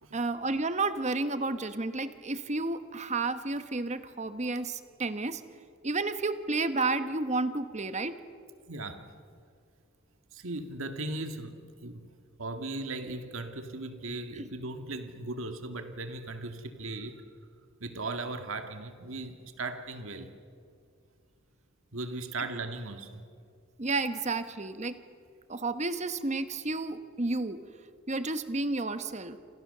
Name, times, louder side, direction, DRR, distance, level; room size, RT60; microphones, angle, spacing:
voice 1, 0.1-5.4 5.8-8.2 14.4-14.5 23.8-24.9 25.5-27.6 28.1-29.4, right 3 dB, 35° right, 11 dB, 1.2 m, -31 dB
voice 2, 8.7-9.1 10.3-12.1 12.4-17.2 17.8-20.3 21.9-23.2, right 2 dB, 75° right, 7 dB, 2.0 m, -38 dB
28.5 x 27.0 x 6.8 m, 2.3 s
head